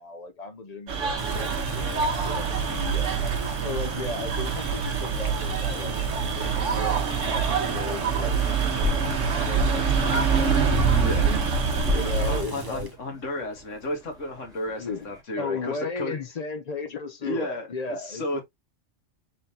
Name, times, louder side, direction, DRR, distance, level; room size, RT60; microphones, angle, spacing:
voice 1, 0.0-3.2 3.6-6.0 6.4-11.4 11.9-13.5 14.8-18.4, left 4 dB, 45° left, 0.5 m, -36 dB
sound 1, 0.9-12.4, right 5 dB, 70° right, 1.3 m, -25 dB
Boiling, 1.2-13.0, right 5 dB, 25° right, 0.5 m, -36 dB
sound 2, 8.5-15.2, left 1 dB, 5° right, 2.0 m, -33 dB
voice 2, 11.0-11.3 12.3-16.2 17.2-17.7 18.0-18.4, left 1 dB, 70° left, 1.8 m, -33 dB
4.2 x 3.7 x 2.7 m
omnidirectional pair, 1.3 m